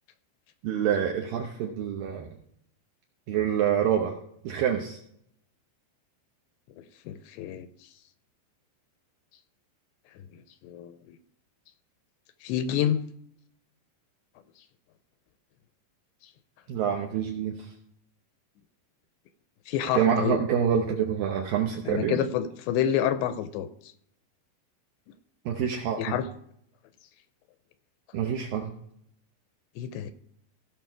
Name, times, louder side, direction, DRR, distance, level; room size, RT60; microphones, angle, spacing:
voice 1, 0.6-2.3 3.3-4.1 4.4-5.0 16.7-17.7 19.9-22.2 25.5-26.2 28.1-28.7, right 8 dB, 75° right, 2 dB, 2.1 m, -26 dB
voice 2, 6.8-7.7 10.3-11.2 12.4-13.0 19.7-20.4 21.9-23.9 26.0-26.3 29.8-30.1, left 10 dB, 80° left, 11 dB, 2.6 m, -29 dB
16.5 x 5.9 x 4.6 m, 0.72 s
omnidirectional pair, 5.2 m